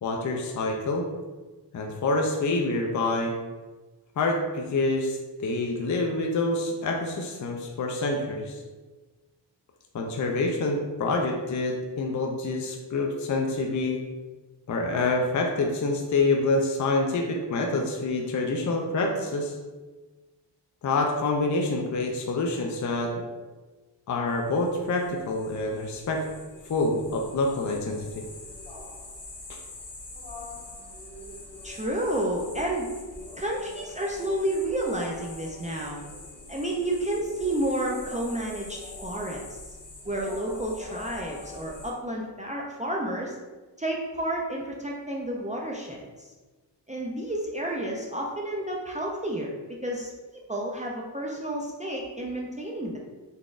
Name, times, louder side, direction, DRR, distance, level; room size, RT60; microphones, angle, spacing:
voice 1, 0.0-1.1 1.7-3.3 4.2-8.6 9.9-14.0 14.7-19.5 20.8-23.1 24.1-26.2 26.7-28.2 29.5-29.6, left 2 dB, 45° left, 1 dB, 0.5 m, -27 dB
sound 1, 24.3-41.9, left 2 dB, 70° left, 0.9 m, -44 dB
voice 2, 31.6-32.9 33.3-36.0 36.5-39.4 40.0-43.4 43.8-46.3 46.9-49.5 49.8-53.0, right 1 dB, 20° right, -2 dB, 0.4 m, -30 dB
4.1 x 3.3 x 2.4 m, 1.3 s
wide cardioid pair, 120°, 43 cm